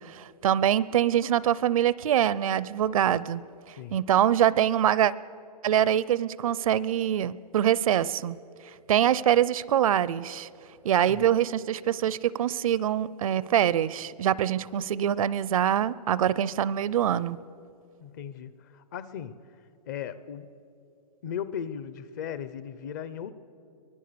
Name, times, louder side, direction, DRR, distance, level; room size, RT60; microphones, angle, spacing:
voice 1, 0.0-3.4 3.9-5.1 5.6-8.4 8.9-10.5 10.8-17.4, right 10 dB, 55° right, 20 dB, 0.5 m, -24 dB
voice 2, 18.0-19.4 19.9-20.5 21.2-23.3, left 8 dB, 30° left, 15 dB, 0.5 m, -37 dB
24.0 x 19.0 x 6.8 m, 2.6 s
hypercardioid pair, 170°, 21 cm